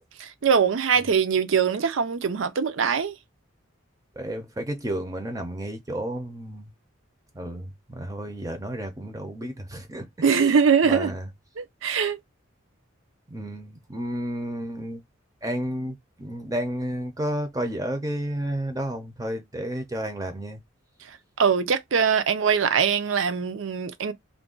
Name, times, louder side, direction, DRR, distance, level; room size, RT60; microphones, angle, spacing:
voice 1, 0.2-3.1 10.2-11.1 11.6-12.2 21.4-24.1, right 6 dB, 70° right, 0.5 m, -22 dB
voice 2, 4.2-6.7 7.4-10.0 10.4-10.5 10.8-11.3 13.3-15.0 15.4-20.6, right 1 dB, 15° right, 0.5 m, -31 dB
2.5 x 2.2 x 3.6 m
head